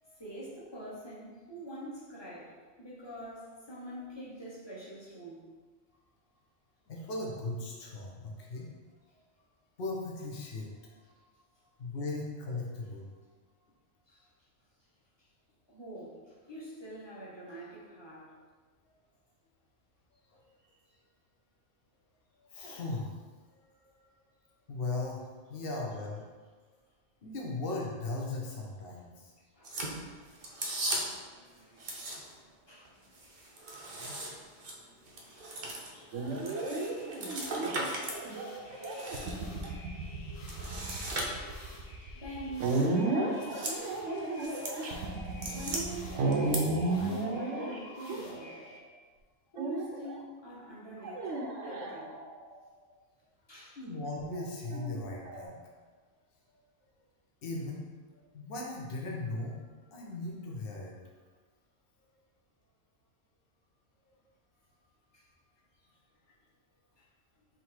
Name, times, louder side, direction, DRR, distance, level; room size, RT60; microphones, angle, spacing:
voice 1, 0.2-5.4 14.1-14.2 15.7-18.3 29.5-29.8 30.2-30.4 31.1-33.2 41.9-43.7 45.4-48.6 49.5-52.1 53.5-53.8 65.1-65.3 67.0-67.1, right 1 dB, 20° left, -7 dB, 1.0 m, -45 dB
voice 2, 6.9-8.7 9.8-11.0 11.8-13.1 20.3-20.4 22.5-23.1 23.5-23.6 24.7-26.3 27.2-29.3 53.8-55.7 57.4-57.9 58.3-59.6 59.9-61.0, left 2 dB, 55° left, -2 dB, 1.0 m, -38 dB
sound 1, 29.6-31.3 31.8-32.5 32.8-38.2 38.6-39.7 40.4-41.8 42.6-42.9 43.3-43.8 44.1-44.8 45.1-45.8 46.3-46.6, right 1 dB, 50° right, 0.7 m, -38 dB
sound 2, 34.0-48.8, left 2 dB, 80° left, 1.1 m, -53 dB
sound 3, 36.1-48.8 49.6-50.2 51.0-52.5 54.1-55.5, right 2 dB, 75° right, 1.0 m, -34 dB
3.9 x 2.8 x 4.4 m, 1.4 s
omnidirectional pair, 1.3 m